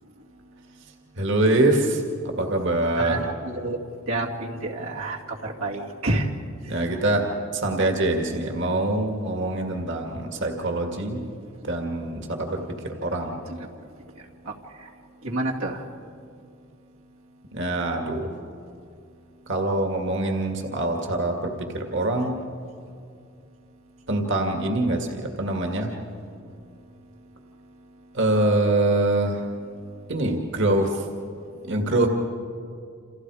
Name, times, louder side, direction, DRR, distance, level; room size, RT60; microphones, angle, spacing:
voice 1, 0.8-3.3 6.7-7.3 7.5-11.2 11.6-13.4 17.5-18.4 19.5-22.4 24.1-26.0 28.1-29.5 30.1-31.1 31.6-32.1, right 2 dB, 60° right, 3 dB, 2.2 m, -24 dB
voice 2, 3.0-3.8 4.1-6.3 14.5-14.6 14.8-14.9 15.2-15.8, right 2 dB, 85° right, -1 dB, 2.3 m, -28 dB
29.0 x 28.0 x 4.9 m, 2.4 s
head